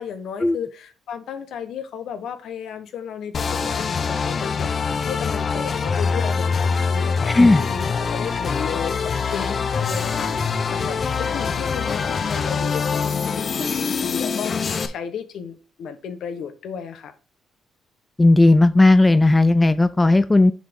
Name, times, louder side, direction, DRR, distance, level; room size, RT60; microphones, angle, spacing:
voice 1, 0.0-17.1, left 7 dB, 75° left, 1.1 m, -34 dB
sound 1, 3.3-14.9, left 5 dB, 45° left, 0.7 m, -24 dB
voice 2, 7.3-7.6 18.2-20.5, left 2 dB, 15° left, 0.4 m, -15 dB
7.1 x 4.9 x 3.6 m
cardioid pair, 90°, 0 cm